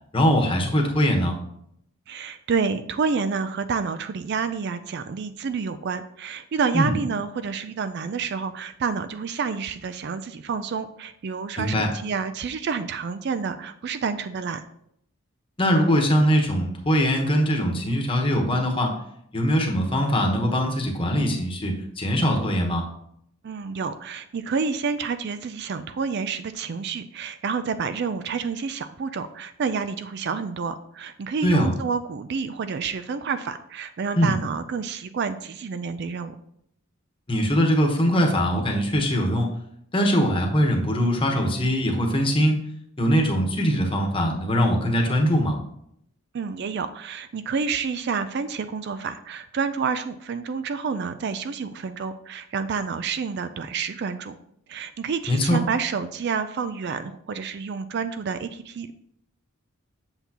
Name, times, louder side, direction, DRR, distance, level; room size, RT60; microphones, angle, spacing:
voice 1, 0.1-1.3 6.7-6.9 11.6-11.9 15.6-18.9 19.3-22.8 31.4-31.7 34.2-34.3 37.3-39.5 39.9-42.6 43.0-45.6 55.3-55.6, equal, 25° left, 1 dB, 1.1 m, -22 dB
voice 2, 2.1-14.6 23.4-36.4 46.3-54.3 54.7-58.9, right 5 dB, 50° right, 11 dB, 0.4 m, -29 dB
8.0 x 7.0 x 2.9 m, 0.74 s
head